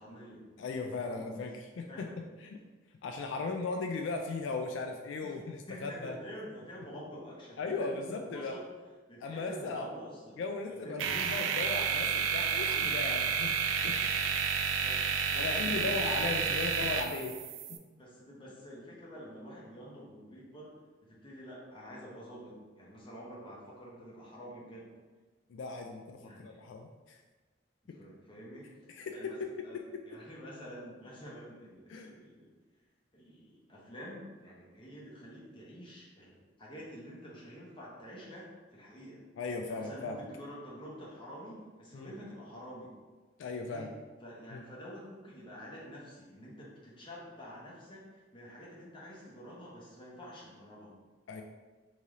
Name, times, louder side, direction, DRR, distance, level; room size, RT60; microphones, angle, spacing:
voice 1, 0.0-0.4 0.8-1.5 1.9-2.1 3.3-3.7 5.2-5.3 5.7-8.6 9.1-10.4 10.7-11.5 14.8-15.0 15.3-17.2 18.0-20.7 21.0-24.9 26.2-26.6 27.8-28.7 29.1-29.4 29.6-32.5 33.1-39.2 39.6-42.9 43.6-43.9 44.2-50.9, equal, 25° left, -5 dB, 0.9 m, -48 dB
voice 2, 0.6-2.1 2.4-2.6 3.0-6.2 7.6-8.6 9.2-9.9 10.4-13.5 13.8-14.0 15.4-17.3 17.7-17.8 25.5-27.2 28.9-29.3 31.9-32.1 39.4-40.3 41.9-42.1 43.4-43.9 44.5-44.6 51.3-51.4, left 3 dB, 80° left, 4 dB, 0.3 m, -37 dB
sound 1, 11.0-17.8, right 6 dB, 85° right, 0.3 m, -31 dB
3.2 x 2.8 x 3.6 m, 1.3 s
head